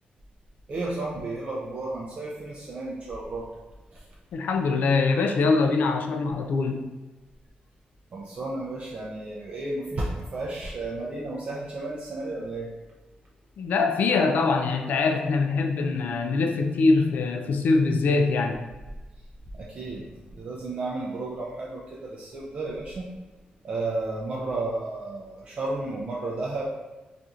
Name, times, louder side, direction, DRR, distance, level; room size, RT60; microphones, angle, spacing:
voice 1, 0.7-3.5 3.9-4.0 8.1-12.7 19.5-23.1 23.6-26.7, right 2 dB, 45° right, -4 dB, 0.4 m, -33 dB
voice 2, 4.3-6.8 13.6-18.6, left 3 dB, 75° left, 5 dB, 0.3 m, -23 dB
4.2 x 2.5 x 2.4 m, 1.2 s
wide cardioid pair, 145°, 3 cm